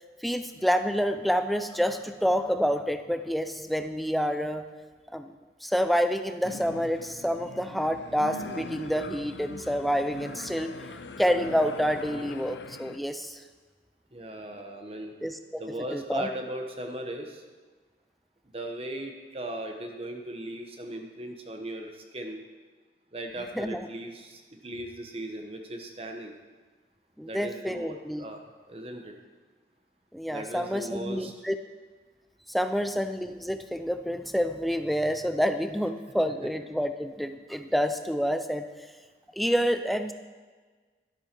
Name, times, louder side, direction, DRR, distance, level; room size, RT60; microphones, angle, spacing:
voice 1, 0.2-4.6 5.1-5.3 5.6-10.9 11.2-13.4 15.2-15.6 15.9-16.3 23.6-23.9 27.2-28.2 30.1-31.6 32.5-38.7 39.4-40.1, equal, ahead, 8 dB, 0.5 m, -28 dB
sound 1, 6.4-13.0, left 3 dB, 75° left, 0.6 m, -41 dB
voice 2, 14.1-15.1 15.6-17.4 18.4-22.4 23.1-26.3 27.2-28.4 28.7-29.2 30.3-31.3 36.4-36.5, right 1 dB, 30° right, 4 dB, 1.1 m, -38 dB
12.0 x 12.0 x 4.5 m, 1.4 s
head